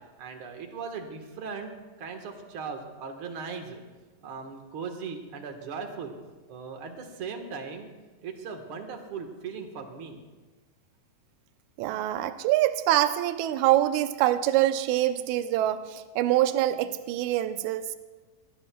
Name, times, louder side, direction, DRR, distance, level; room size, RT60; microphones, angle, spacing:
voice 1, 0.2-1.7 2.0-3.8 4.2-6.1 6.5-7.9 8.2-10.2, right 5 dB, 50° right, 4 dB, 1.8 m, -38 dB
voice 2, 11.8-18.0, right 13 dB, 75° right, 10 dB, 1.8 m, -25 dB
21.5 x 19.5 x 2.3 m, 1.3 s
omnidirectional pair, 4.0 m